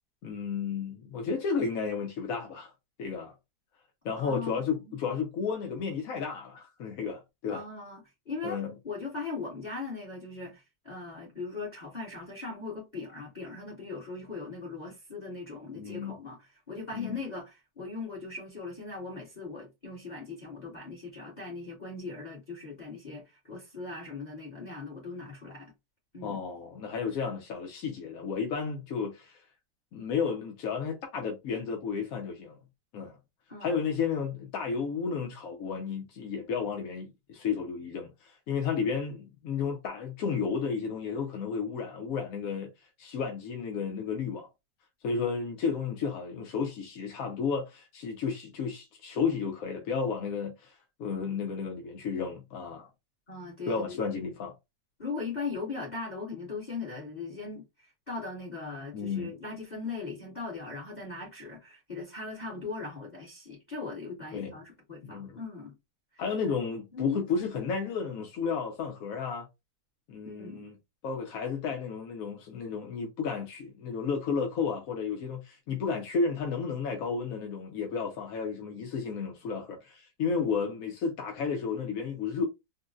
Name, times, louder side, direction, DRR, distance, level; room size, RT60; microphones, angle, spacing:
voice 1, 0.2-2.7 3.0-3.3 4.0-7.6 8.4-8.7 15.8-16.2 16.9-17.2 26.2-29.4 29.9-32.6 32.9-33.2 33.6-42.7 43.0-44.5 45.0-52.9 53.7-54.5 58.9-59.3 64.3-64.6 65.0-65.4 66.2-69.5 70.1-70.8 71.0-82.4, left 5 dB, 65° left, 1.0 m, -32 dB
voice 2, 4.2-5.0 7.5-25.7 26.1-26.4 33.5-33.8 53.3-54.0 55.0-65.7 66.9-67.2 70.2-70.6, left 4 dB, 30° left, 1.1 m, -39 dB
3.8 x 2.1 x 2.4 m
omnidirectional pair, 1.9 m